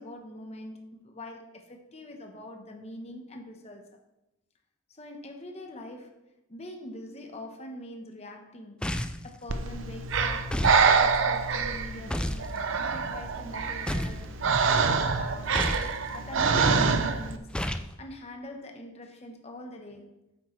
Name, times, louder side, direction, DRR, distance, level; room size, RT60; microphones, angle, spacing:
voice 1, 0.0-4.0 4.9-6.2 6.5-9.0 9.2-10.6 10.9-12.6 12.9-15.6 16.1-17.5 18.0-20.2, left 1 dB, 35° left, 1.0 m, -44 dB
sound 1, 8.8-9.3 10.5-10.8 12.1-12.5 13.9-14.3 15.5-15.9 17.5-17.9, left 1 dB, 5° left, 0.3 m, -30 dB
Breathing, 9.5-17.4, right 5 dB, 85° right, 0.6 m, -26 dB
9.0 x 8.1 x 3.2 m
head